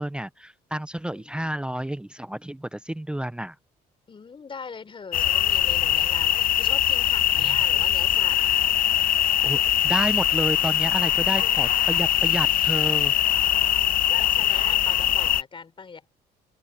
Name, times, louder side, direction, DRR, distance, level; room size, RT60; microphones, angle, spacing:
voice 1, 0.0-3.5 9.4-13.1, right 1 dB, 5° right, 0.6 m, -30 dB
voice 2, 1.1-1.6 4.1-8.4 13.3-16.1, left 5 dB, 30° left, 4.8 m, -41 dB
sound 1, 5.1-15.4, left 12 dB, 55° left, 0.8 m, -22 dB
open air
cardioid pair, 110°, 17 cm